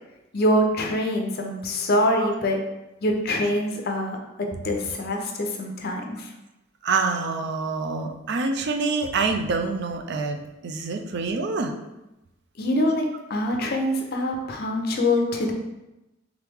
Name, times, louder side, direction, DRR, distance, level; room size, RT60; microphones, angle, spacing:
voice 1, 0.3-2.6 3.0-6.3 12.6-13.0 13.3-15.5, left 1 dB, 55° left, 2 dB, 0.6 m, -24 dB
voice 2, 6.8-11.7 13.6-13.8, right 4 dB, 60° right, 4 dB, 0.4 m, -26 dB
3.6 x 3.2 x 3.4 m, 0.96 s
head